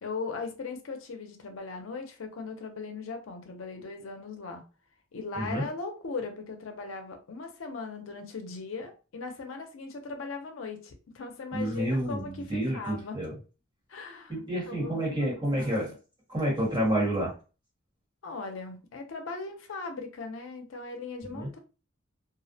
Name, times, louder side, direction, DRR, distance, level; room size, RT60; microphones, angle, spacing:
voice 1, 0.0-4.6 5.1-13.2 13.9-14.3 14.7-15.9 18.2-21.6, left 4 dB, 75° left, 0.5 m, -39 dB
voice 2, 5.4-5.7 11.5-13.4 14.3-15.9 16.3-17.3 21.3-21.5, right 1 dB, 25° right, 1.2 m, -29 dB
2.4 x 2.0 x 2.6 m
head